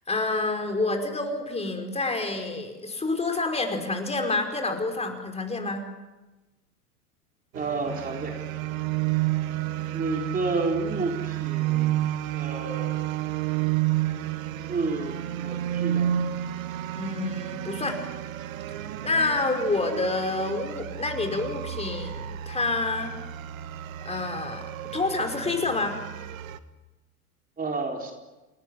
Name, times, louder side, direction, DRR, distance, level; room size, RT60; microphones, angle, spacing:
voice 1, 0.1-5.9 16.9-18.0 19.0-23.1 24.0-24.6 24.9-26.0, left 3 dB, 15° left, 5 dB, 5.2 m, -28 dB
voice 2, 7.5-8.4 9.9-12.0 12.3-13.0 14.7-16.1 27.6-28.1, right 3 dB, 20° right, 2 dB, 4.2 m, -30 dB
sound 1, 7.5-26.6, right 12 dB, 60° right, 1.7 m, -31 dB
29.5 x 19.5 x 9.7 m, 1.1 s
figure-of-eight pair, 85°, 45 cm